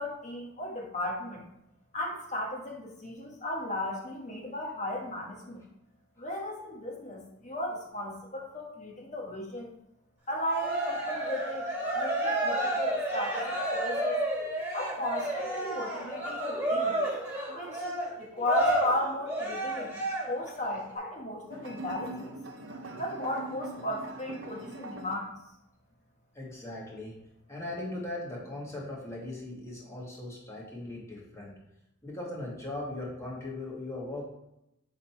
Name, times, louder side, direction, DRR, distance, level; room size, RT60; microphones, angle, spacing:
voice 1, 0.0-1.4 1.9-5.6 6.2-9.7 10.3-11.7 11.9-14.2 14.7-17.0 17.5-22.3 23.0-25.3, left 1 dB, 35° left, -1 dB, 1.4 m, -35 dB
Cheering, 10.4-20.5, right 1 dB, 10° right, 2.0 m, -31 dB
sound 1, 21.5-25.1, right 2 dB, 65° right, 0.8 m, -42 dB
voice 2, 26.3-27.2 27.5-31.5 32.0-34.2, left 2 dB, 15° left, -4 dB, 1.8 m, -39 dB
6.5 x 3.9 x 4.4 m, 0.85 s
head